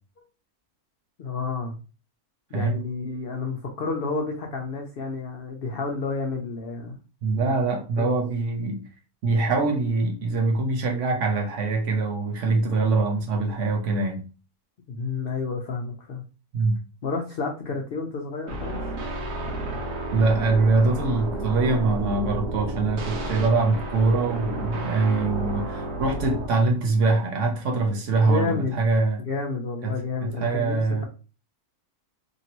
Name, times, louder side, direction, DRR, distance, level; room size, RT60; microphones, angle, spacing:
voice 1, 1.2-1.8 2.5-7.0 7.4-7.5 8.0-8.2 14.9-16.2 17.0-18.8 28.2-28.7 29.3-31.0, left 4 dB, 70° left, 0.5 m, -30 dB
voice 2, 7.2-8.8 9.2-14.3 16.5-16.8 20.1-29.2 29.8-31.1, right 3 dB, 60° right, 0.9 m, -23 dB
sound 1, 18.5-26.5, right 1 dB, 85° right, 1.3 m, -31 dB
2.9 x 2.7 x 2.8 m
omnidirectional pair, 1.6 m